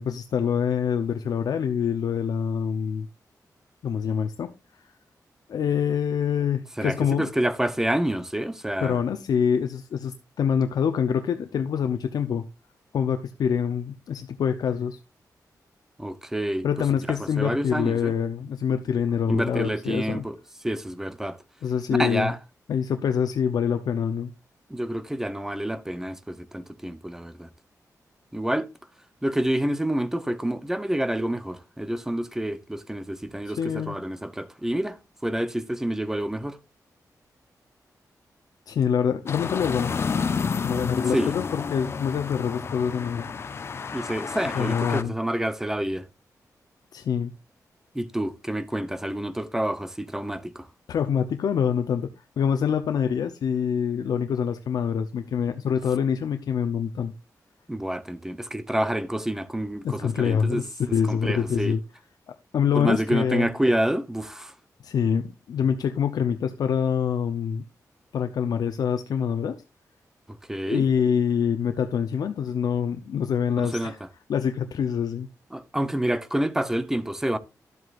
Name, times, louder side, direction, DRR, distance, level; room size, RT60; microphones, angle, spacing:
voice 1, 0.0-3.1 3.8-4.5 4.8-4.9 5.5-7.3 8.8-12.4 12.9-15.0 16.6-20.3 21.6-22.3 22.7-24.3 33.4-33.9 38.7-39.9 40.6-43.3 44.5-45.1 46.9-47.3 50.9-52.1 52.4-57.1 59.8-61.8 62.5-63.5 64.8-67.6 68.1-69.6 70.7-74.0 74.3-75.3, left 7 dB, 75° left, 0.7 m, -25 dB
voice 2, 6.8-9.0 16.0-16.7 17.4-18.1 19.3-20.4 20.6-21.4 21.9-22.4 24.7-27.5 28.3-28.7 29.2-35.0 35.2-36.6 41.1-41.3 43.9-46.1 47.9-50.7 57.7-60.6 61.1-61.7 62.7-64.5 70.5-70.9 73.6-73.9 75.5-77.4, right 1 dB, 5° right, 0.7 m, -28 dB
sound 1, 39.3-45.0, left 5 dB, 40° left, 0.6 m, -30 dB
12.0 x 7.8 x 2.5 m
wide cardioid pair, 165°, 7 cm